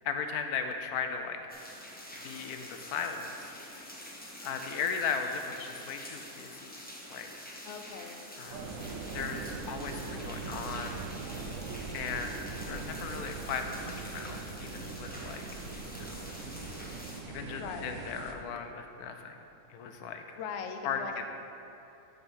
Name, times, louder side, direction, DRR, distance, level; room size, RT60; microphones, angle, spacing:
voice 1, 0.0-1.4 2.2-3.5 4.4-6.8 7.1-7.3 8.4-8.7 9.1-11.1 11.9-15.4 16.1-16.2 17.3-19.4 19.7-20.2 20.8-21.0, left 6 dB, 80° left, 6 dB, 1.1 m, -37 dB
sound 1, 1.5-17.2, left 1 dB, 10° left, 0.6 m, -47 dB
voice 2, 7.6-8.2 17.4-18.0 20.4-21.3, left 6 dB, 65° left, 6 dB, 0.7 m, -41 dB
sound 2, 8.5-18.3, right 4 dB, 65° right, 1.0 m, -41 dB
6.8 x 5.3 x 6.1 m, 2.9 s
omnidirectional pair, 1.6 m